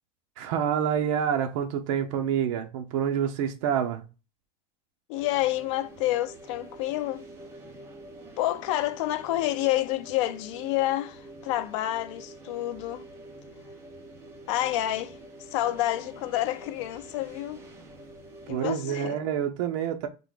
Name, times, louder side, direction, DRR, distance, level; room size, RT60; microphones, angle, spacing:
voice 1, 0.4-4.1 18.5-20.1, right 8 dB, 70° right, 0.7 m, -27 dB
voice 2, 5.1-7.3 8.4-13.1 14.5-15.2 15.5-17.6 18.5-19.2, left 14 dB, 70° left, 0.5 m, -28 dB
sound 1, 5.1-18.5, right 1 dB, 15° right, 0.8 m, -47 dB
3.8 x 2.8 x 3.8 m
cardioid pair, 175°, 16 cm